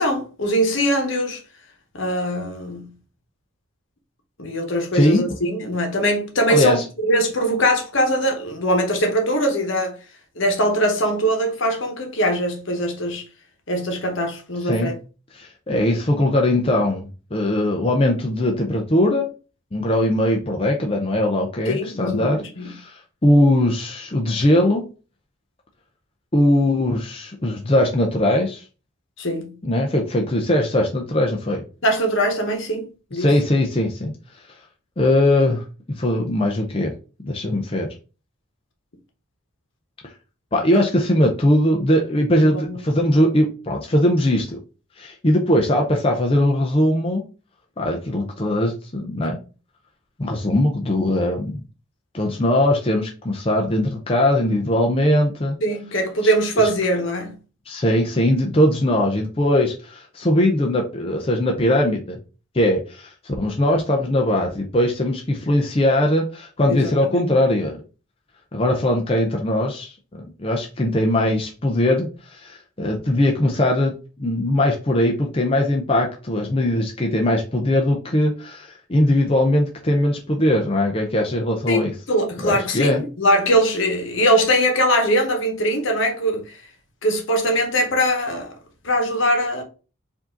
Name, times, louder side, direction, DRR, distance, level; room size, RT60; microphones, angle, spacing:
voice 1, 0.0-1.4 1.9-2.9 4.4-10.0 10.4-13.2 13.7-14.9 21.7-22.7 29.2-29.5 31.8-33.3 40.7-40.8 42.4-42.8 55.6-57.3 66.7-67.3 81.7-86.6 87.0-88.5 88.8-89.6, equal, 65° left, 1.1 m, -22 dB
voice 2, 4.9-5.3 6.5-6.8 14.6-14.9 15.3-19.3 19.7-24.9 26.3-28.6 29.6-31.6 33.2-34.1 35.0-35.6 35.9-36.9 37.2-37.9 40.5-44.6 45.0-47.2 47.8-49.4 50.2-51.6 52.1-55.6 56.2-56.3 57.7-62.2 62.5-67.8 68.5-81.9 82.4-83.0, left 1 dB, 25° left, 0.6 m, -20 dB
4.8 x 2.8 x 3.7 m
head